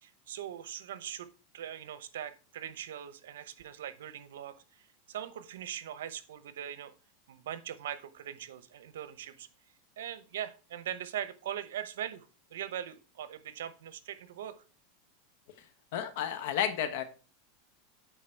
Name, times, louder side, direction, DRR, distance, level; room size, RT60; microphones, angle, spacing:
voice 1, 0.0-6.9 7.3-9.5 10.0-14.6, right 10 dB, 85° right, 14 dB, 0.8 m, -41 dB
voice 2, 15.9-17.0, left 9 dB, 65° left, 10 dB, 1.3 m, -31 dB
9.3 x 4.0 x 4.5 m, 0.35 s
supercardioid pair, 145°, 0 cm